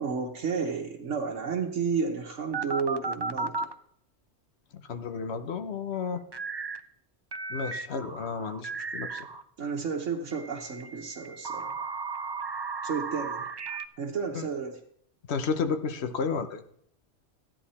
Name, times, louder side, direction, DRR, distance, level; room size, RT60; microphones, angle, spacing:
voice 1, 0.0-3.7 9.6-11.9 12.8-13.5 14.0-14.8, right 5 dB, 90° right, -1 dB, 1.5 m, -32 dB
sound 1, 2.5-3.7 6.3-6.8 7.3-9.4 10.3-13.9, right 4 dB, 35° right, 0.4 m, -35 dB
voice 2, 4.7-6.2 7.5-9.3 14.3-14.5 15.3-16.6, left 5 dB, 65° left, 9 dB, 1.2 m, -32 dB
15.0 x 10.5 x 4.3 m, 0.66 s
omnidirectional pair, 1.2 m